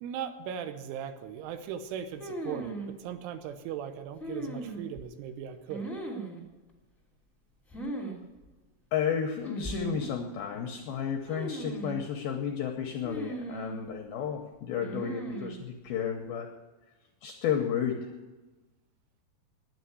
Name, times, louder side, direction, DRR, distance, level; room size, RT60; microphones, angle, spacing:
voice 1, 0.0-5.9, right 8 dB, 90° right, 9 dB, 3.4 m, -38 dB
sound 1, 2.2-2.9 4.2-5.0 5.7-6.4 7.7-8.2 8.4-8.5 9.4-10.1 11.2-12.0 13.0-13.8 14.8-15.6, right 2 dB, ahead, 0.6 m, -37 dB
voice 2, 8.9-16.5 17.2-18.1, left 8 dB, 85° left, 3 dB, 2.2 m, -32 dB
9.9 x 9.5 x 9.5 m, 1.1 s
omnidirectional pair, 5.5 m